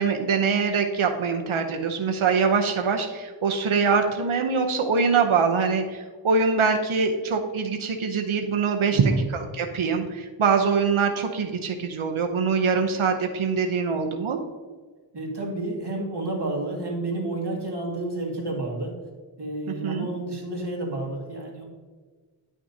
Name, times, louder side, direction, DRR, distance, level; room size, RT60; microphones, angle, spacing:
voice 1, 0.0-14.4 19.8-20.1, right 5 dB, 85° right, 4 dB, 0.8 m, -23 dB
voice 2, 8.9-9.3 15.1-19.0 19.4-21.6, right 2 dB, 55° right, -2 dB, 2.0 m, -30 dB
11.0 x 6.0 x 2.7 m, 1.4 s
wide cardioid pair, 85°, 48 cm